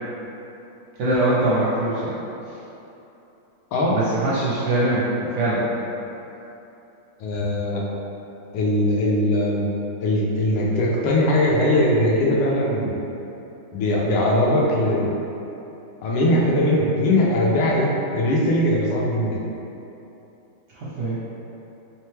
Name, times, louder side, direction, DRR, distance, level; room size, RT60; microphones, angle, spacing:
voice 1, 1.0-2.1 3.9-5.6 20.7-21.2, right 2 dB, 75° right, -8 dB, 1.0 m, -22 dB
voice 2, 3.7-4.0 7.2-7.8 8.5-9.7 10.0-13.0 13.7-15.1 16.0-19.4, left 1 dB, 85° left, -3 dB, 1.6 m, -20 dB
3.7 x 3.3 x 3.3 m, 2.9 s
omnidirectional pair, 2.4 m